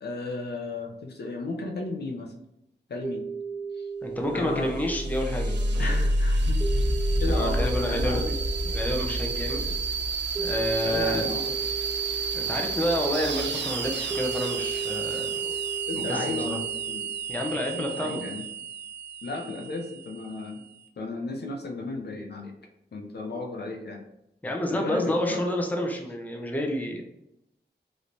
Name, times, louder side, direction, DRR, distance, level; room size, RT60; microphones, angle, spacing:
voice 1, 0.0-2.3 2.9-3.3 3.8-3.9 4.3-4.7 5.8-6.6 7.2-8.3 10.8-11.5 15.9-17.1 17.7-18.4 19.2-20.6 21.0-22.5 22.9-24.0 24.7-25.5, left 3 dB, 65° left, 1 dB, 0.5 m, -34 dB
sound 1, 3.0-17.2, right 5 dB, 10° right, 1.2 m, -37 dB
voice 2, 4.0-6.0 7.3-8.2 8.6-9.6 10.4-11.4 12.3-15.6 15.9-16.6 17.3-18.2 24.4-27.0, left 1 dB, 10° left, 1 dB, 0.5 m, -29 dB
sound 2, 4.3-20.7, right 2 dB, 75° right, 0.4 m, -29 dB
3.1 x 3.0 x 2.6 m, 0.84 s
wide cardioid pair, 85°, 19 cm